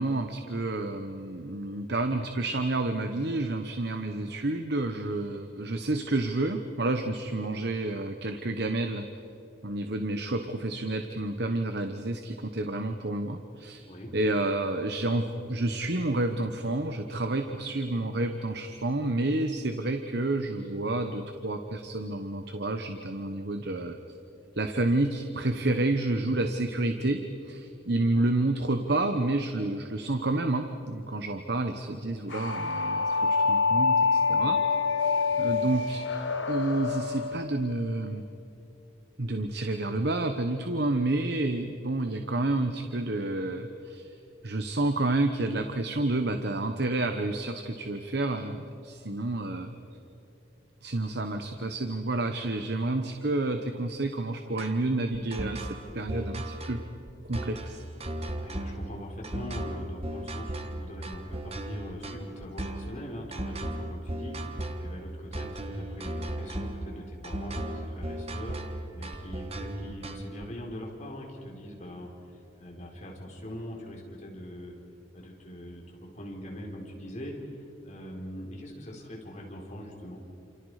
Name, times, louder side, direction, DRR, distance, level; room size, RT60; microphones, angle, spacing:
voice 1, 0.0-9.1 9.6-13.9 14.1-24.0 24.6-34.6 35.4-36.0 36.5-38.2 39.2-44.1 44.4-49.7 50.8-56.8 57.3-57.8, right 2 dB, 55° right, 6 dB, 1.1 m, -29 dB
sound 1, 32.3-37.4, left 4 dB, 65° left, 1.6 m, -26 dB
sound 2, 54.6-70.4, right 1 dB, 30° right, 1.5 m, -36 dB
voice 2, 58.3-72.1 72.6-74.7 75.1-77.4 77.8-80.2, equal, 35° left, -1 dB, 4.4 m, -42 dB
29.0 x 28.0 x 5.0 m, 2.9 s
head